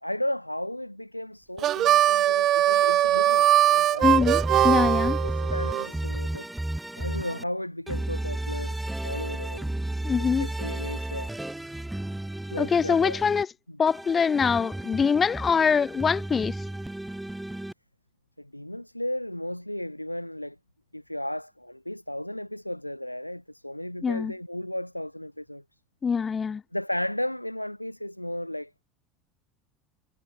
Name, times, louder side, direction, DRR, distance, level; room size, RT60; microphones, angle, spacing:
voice 1, 0.0-4.1 5.2-6.5 7.0-8.8 9.0-9.7 10.4-11.3 12.5-13.2 13.7-13.8 18.4-20.6 20.9-25.6 26.7-28.7, left 1 dB, 90° left, 0.8 m, -34 dB
Harmonica, 1.6-5.9, right 12 dB, 40° right, 0.4 m, -21 dB
voice 2, 4.0-5.2 10.0-10.5 12.6-13.5 13.8-16.6 24.0-24.3 26.0-26.6, left 6 dB, 25° left, 0.8 m, -24 dB
sound 1, 4.0-7.4 7.9-13.4 13.9-17.7, right 1 dB, 5° right, 1.9 m, -32 dB
figure-of-eight pair, 75°, 0 cm